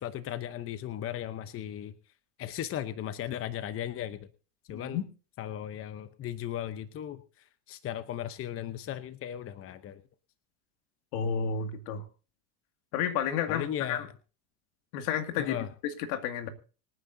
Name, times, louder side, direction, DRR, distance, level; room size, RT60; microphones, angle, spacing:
voice 1, 0.0-1.9 2.4-4.2 4.7-5.0 5.4-7.2 7.7-10.0 13.5-14.0 15.4-15.7, left 11 dB, 30° left, 12 dB, 0.8 m, -36 dB
voice 2, 4.7-5.1 11.1-12.1 12.9-14.1 14.9-15.6 15.8-16.5, left 8 dB, 65° left, 8 dB, 2.3 m, -31 dB
25.5 x 9.7 x 2.7 m, 0.36 s
supercardioid pair, 115°, 47 cm